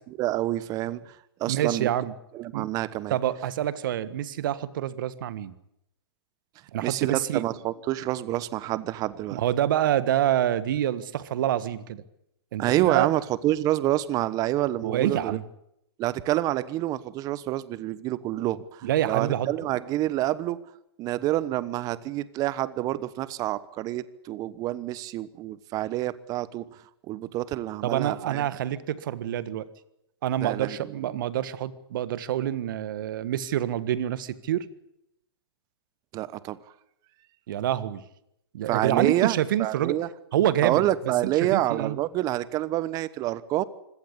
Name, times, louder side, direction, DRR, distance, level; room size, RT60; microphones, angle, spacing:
voice 1, 0.2-1.0 1.4-1.9 2.3-3.2 6.8-9.4 12.6-15.4 16.0-20.6 21.0-26.6 27.1-28.5 30.4-30.8 36.1-36.6 38.7-40.1 40.6-43.6, right 15 dB, 30° right, 18 dB, 1.1 m, -27 dB
voice 2, 1.4-2.1 2.5-2.7 3.1-5.5 6.7-7.4 9.3-12.0 12.5-13.1 14.8-15.4 18.8-19.5 27.8-29.7 30.2-34.6 37.5-38.0 38.5-40.0 40.3-40.8 41.4-42.0, right 11 dB, 55° right, 15 dB, 1.6 m, -27 dB
25.0 x 17.5 x 8.5 m, 0.81 s
hypercardioid pair, 125°, 13 cm